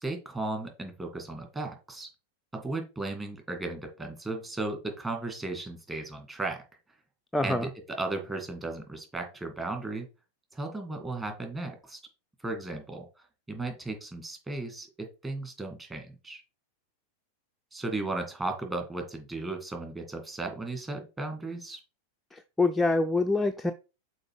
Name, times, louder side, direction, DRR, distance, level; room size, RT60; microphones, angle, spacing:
voice 1, 0.0-2.1 2.5-6.6 7.4-7.7 8.0-10.1 10.5-12.0 12.4-13.1 13.5-16.4 17.7-21.8, right 2 dB, 15° right, 2.1 m, -35 dB
voice 2, 7.3-7.7 22.3-23.7, left 3 dB, 5° left, 0.5 m, -26 dB
6.3 x 4.4 x 4.8 m
figure-of-eight pair, 90°, 0 cm